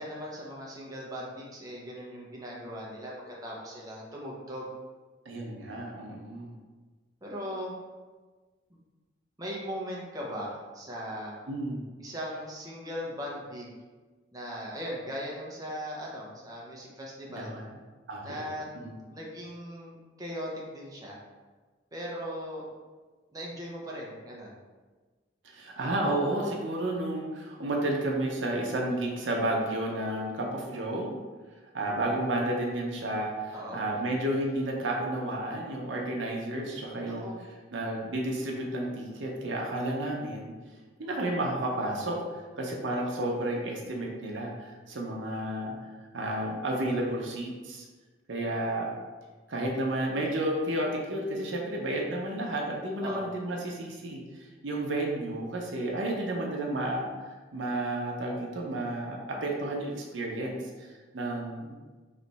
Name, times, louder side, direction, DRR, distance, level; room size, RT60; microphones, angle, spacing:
voice 1, 0.0-4.7 7.2-7.7 9.4-11.4 12.0-13.7 14.3-17.5 18.2-18.7 19.1-21.2 21.9-22.7 23.3-24.6 31.8-32.2 33.5-33.8 37.0-37.4 53.0-53.3, equal, 20° right, -4 dB, 0.7 m, -39 dB
voice 2, 5.3-6.5 11.5-11.8 17.3-17.6 18.1-18.4 18.8-18.9 25.4-31.1 31.7-37.3 37.7-40.5 41.0-42.2 42.6-45.9 46.1-47.8 48.3-48.9 49.5-61.7, right 1 dB, 80° right, -1 dB, 0.7 m, -31 dB
3.3 x 3.1 x 4.0 m, 1.3 s
head